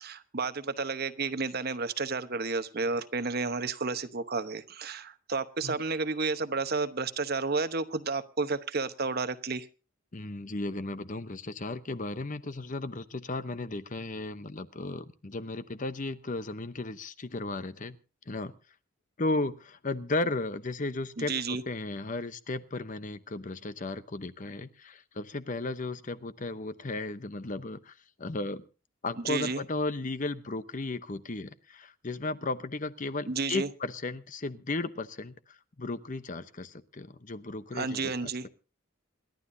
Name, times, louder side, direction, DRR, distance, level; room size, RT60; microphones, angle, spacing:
voice 1, 0.0-9.7 21.2-21.6 29.2-29.6 33.3-33.7 37.7-38.5, right 4 dB, 50° right, 10 dB, 1.0 m, -31 dB
voice 2, 10.1-18.0 18.3-18.5 19.2-28.6 29.0-38.1, left 2 dB, 40° left, 13 dB, 0.8 m, -35 dB
27.5 x 12.0 x 2.7 m, 0.32 s
head